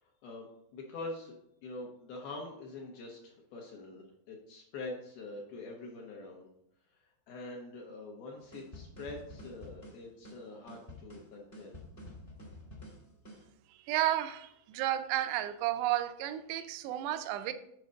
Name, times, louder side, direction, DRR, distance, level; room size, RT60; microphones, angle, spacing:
voice 1, 0.0-1.3 1.6-6.5 6.9-11.8, left 2 dB, 70° left, 2.4 m, -45 dB
sound 1, 8.5-13.5, left 1 dB, 30° left, 1.0 m, -49 dB
voice 2, 13.9-17.5, right 13 dB, 80° right, 2.5 m, -32 dB
8.2 x 4.7 x 6.4 m
omnidirectional pair, 5.5 m